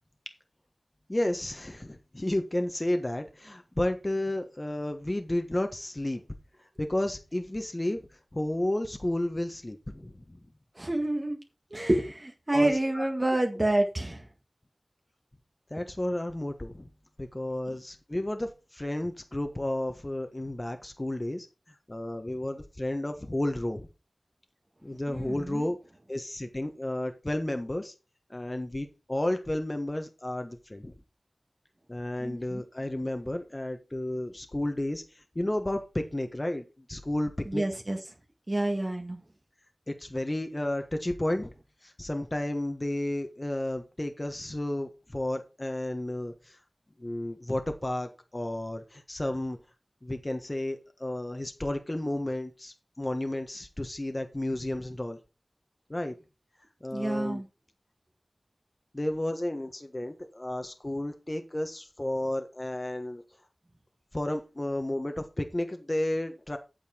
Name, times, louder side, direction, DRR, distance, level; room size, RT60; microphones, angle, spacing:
voice 1, 1.1-6.2 6.8-8.0 8.3-10.4 12.5-13.4 15.7-16.9 17.2-21.5 21.9-23.9 24.8-25.8 26.1-27.9 28.3-30.9 31.9-37.6 39.9-41.5 41.8-46.6 47.0-49.6 50.0-55.2 55.9-56.1 56.8-57.4 58.9-63.2 64.1-66.6, left 1 dB, 30° left, 6 dB, 1.3 m, -32 dB
voice 2, 10.8-11.4 11.7-14.2 25.1-25.7 32.2-32.6 37.5-38.0 38.5-39.2 56.9-57.4, right 1 dB, 35° right, 3 dB, 1.9 m, -28 dB
8.8 x 7.2 x 4.5 m, 0.30 s
wide cardioid pair, 45°, 0 cm